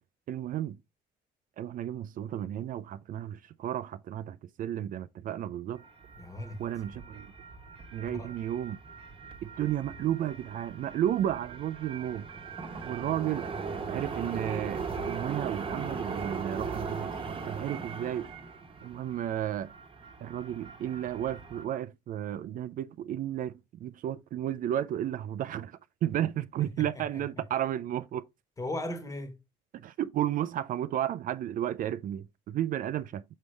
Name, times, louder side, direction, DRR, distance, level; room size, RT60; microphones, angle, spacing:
voice 1, 0.3-0.8 1.6-5.8 6.6-7.3 7.9-8.8 9.4-12.3 12.8-13.5 13.9-18.3 18.8-19.7 20.2-28.2 29.8-33.2, right 11 dB, 55° right, 0.4 m, -33 dB
sound 1, 5.8-21.6, right 5 dB, 30° right, 1.1 m, -39 dB
voice 2, 6.2-6.6 8.1-8.3 26.6-27.4 28.6-29.4, left 1 dB, 20° left, 1.4 m, -38 dB
6.5 x 5.3 x 3.2 m
cardioid pair, 110°, 17 cm